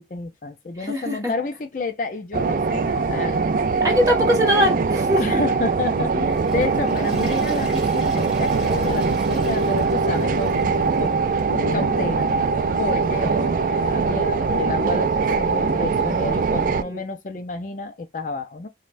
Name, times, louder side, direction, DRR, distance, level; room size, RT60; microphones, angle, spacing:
voice 1, 0.0-3.4 5.2-11.2 11.7-12.3 12.8-18.7, left 3 dB, 45° left, 0.4 m, -30 dB
voice 2, 0.8-1.3 3.8-5.2 16.8-17.0, equal, 20° right, 1.3 m, -21 dB
sound 1, 2.3-16.8, right 4 dB, 45° right, 0.3 m, -22 dB
Water / Toilet flush, 6.1-11.1 11.4-11.5 12.2-12.3 13.6-13.7, right 3 dB, ahead, 1.8 m, -40 dB
Bass guitar, 11.5-15.0, left 1 dB, 80° left, 0.7 m, -37 dB
5.1 x 2.2 x 2.5 m
head